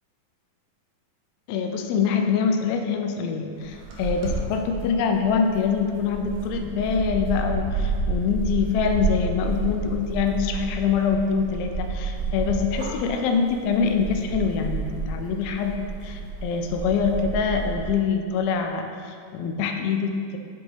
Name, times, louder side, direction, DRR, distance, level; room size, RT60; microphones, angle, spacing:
voice 1, 1.5-20.4, left 6 dB, 90° left, 5 dB, 2.4 m, -25 dB
sound 1, 3.6-17.9, right 4 dB, 70° right, 2.1 m, -30 dB
8.8 x 4.9 x 2.8 m, 2.2 s
omnidirectional pair, 4.1 m